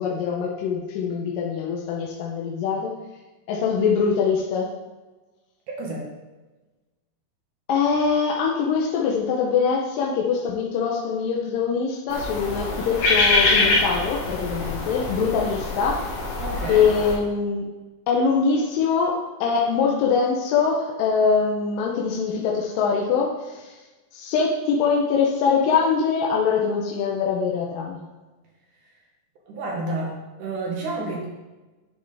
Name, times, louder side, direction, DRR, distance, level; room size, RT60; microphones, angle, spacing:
voice 1, 0.0-2.9 3.5-4.7 7.7-16.0 16.7-17.7 18.1-23.8 24.1-28.0, left 5 dB, 75° left, -2 dB, 2.4 m, -23 dB
voice 2, 5.7-6.1 16.4-16.9 29.5-30.1 30.4-31.3, right 2 dB, 65° right, -1 dB, 2.7 m, -30 dB
sound 1, 12.1-17.1, left 3 dB, 55° left, 2.1 m, -24 dB
10.5 x 6.3 x 3.4 m, 1.2 s
omnidirectional pair, 4.1 m